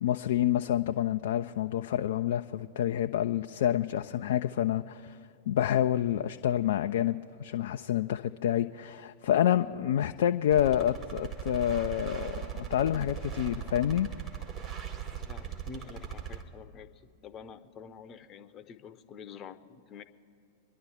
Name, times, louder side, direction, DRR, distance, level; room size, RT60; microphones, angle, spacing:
voice 1, 0.0-5.2 5.5-14.1, left 11 dB, 60° left, 8 dB, 0.3 m, -28 dB
sound 1, 10.5-16.4, right 9 dB, 35° right, 1.6 m, -39 dB
voice 2, 15.2-16.9 17.2-20.0, left 6 dB, 30° left, 12 dB, 0.8 m, -47 dB
27.0 x 11.0 x 3.7 m, 2.5 s
figure-of-eight pair, 95°, 0 cm